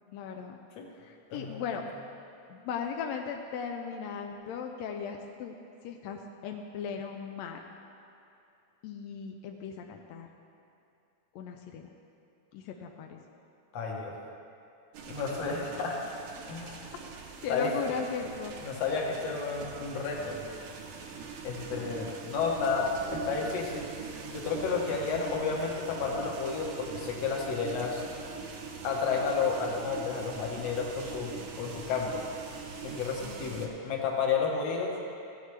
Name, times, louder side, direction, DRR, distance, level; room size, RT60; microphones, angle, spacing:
voice 1, 0.1-0.6 1.0-1.8 2.5-5.6 5.8-7.6 8.8-10.3 11.3-11.8 12.5-13.2 17.4-18.6 33.2-33.6, left 6 dB, 80° left, 3 dB, 1.6 m, -37 dB
voice 2, 1.3-1.6 13.7-14.2 15.1-16.0 16.5-16.8 17.5-17.7 18.6-20.4 21.4-23.9 24.3-28.0 28.8-32.2 32.8-35.0, left 5 dB, 60° left, -1 dB, 2.2 m, -31 dB
sound 1, 14.9-33.7, right 5 dB, 75° right, 2.2 m, -42 dB
16.0 x 8.0 x 3.2 m, 2.7 s
omnidirectional pair, 3.6 m